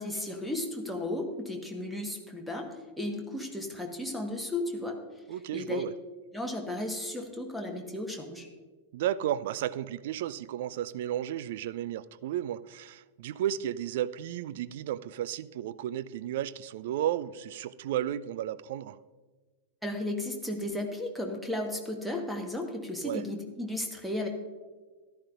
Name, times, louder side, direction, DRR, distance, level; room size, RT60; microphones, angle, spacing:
voice 1, 0.0-2.7 3.0-5.0 5.5-5.8 6.3-8.5 19.8-24.3, left 1 dB, ahead, 1.3 m, -34 dB
voice 2, 5.3-5.9 8.9-19.0 23.0-23.3, right 11 dB, 55° right, 0.3 m, -33 dB
14.0 x 11.5 x 2.5 m
figure-of-eight pair, 90°, 0 cm